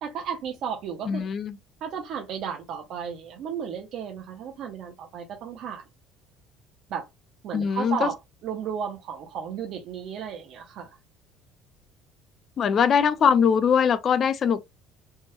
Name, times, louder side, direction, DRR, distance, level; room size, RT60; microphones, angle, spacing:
voice 1, 0.0-1.2 1.8-5.8 6.9-7.1 7.4-8.2 8.4-11.0, right 7 dB, 60° right, 0.7 m, -34 dB
voice 2, 1.1-1.6 7.5-8.1 12.6-14.7, left 7 dB, 35° left, 0.4 m, -22 dB
3.4 x 2.1 x 2.9 m
cardioid pair, 150°, 0 cm